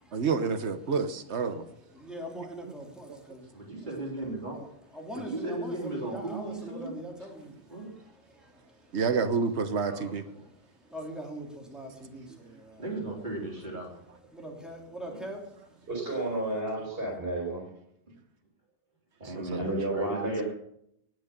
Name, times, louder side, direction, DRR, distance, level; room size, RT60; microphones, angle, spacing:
voice 1, 0.1-1.7 3.1-3.2 8.9-10.2 19.3-19.8, right 5 dB, 75° right, 10 dB, 1.4 m, -29 dB
voice 2, 2.0-3.4 4.0-4.7 4.9-7.4 10.9-12.2 14.3-15.4, right 1 dB, ahead, -1 dB, 3.2 m, -41 dB
voice 3, 3.5-4.6 5.2-6.9 7.7-7.9 9.8-10.2 12.8-14.3 15.1-15.2 17.5-17.6 19.2-20.4, right 2 dB, 45° right, -1 dB, 3.7 m, -36 dB
voice 4, 15.9-17.6 19.6-20.4, right 2 dB, 60° right, -2 dB, 4.5 m, -31 dB
19.0 x 6.4 x 6.8 m, 0.74 s
omnidirectional pair, 1.1 m